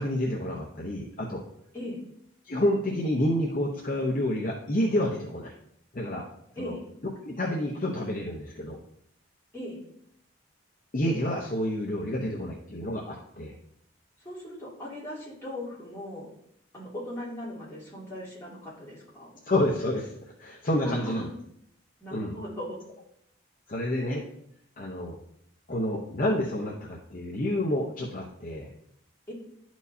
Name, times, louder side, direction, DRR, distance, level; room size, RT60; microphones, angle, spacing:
voice 1, 0.0-1.4 2.4-5.5 5.9-6.2 6.6-6.7 7.2-8.8 10.9-13.6 19.4-20.1 20.4-21.3 22.1-22.3 23.7-24.2 24.8-25.2 25.7-28.7, left 1 dB, 45° left, -2 dB, 0.8 m, -29 dB
voice 2, 14.2-16.3 16.7-19.4 20.8-21.4 22.0-22.8 29.3-29.4, left 1 dB, 15° left, -8 dB, 2.6 m, -38 dB
11.0 x 4.5 x 2.7 m, 0.71 s
head